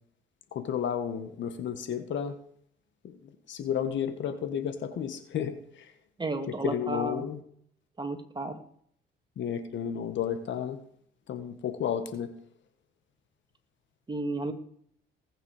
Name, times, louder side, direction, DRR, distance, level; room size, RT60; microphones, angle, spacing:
voice 1, 0.5-2.4 3.0-3.1 3.5-5.6 6.6-7.4 9.4-10.8 11.3-12.3, left 8 dB, 70° left, 9 dB, 1.6 m, -32 dB
voice 2, 6.2-7.3 8.0-8.6 14.1-14.5, right 2 dB, 20° right, 6 dB, 2.4 m, -32 dB
19.0 x 8.9 x 5.0 m, 0.63 s
cardioid pair, 90°, 20 cm